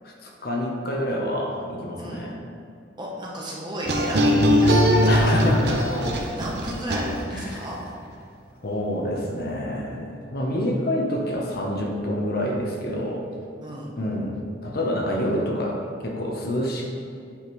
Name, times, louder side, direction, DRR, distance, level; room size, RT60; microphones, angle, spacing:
voice 1, 0.0-2.4 5.1-5.8 7.3-7.7 8.6-13.2 14.0-16.9, equal, 55° left, -1 dB, 1.0 m, -27 dB
voice 2, 2.0-2.3 3.0-5.3 5.7-7.8 13.6-13.9, equal, 25° right, -3 dB, 1.0 m, -33 dB
sound 1, 3.8-7.5, equal, 60° right, 0.7 m, -20 dB
8.6 x 5.2 x 3.2 m, 2.4 s
head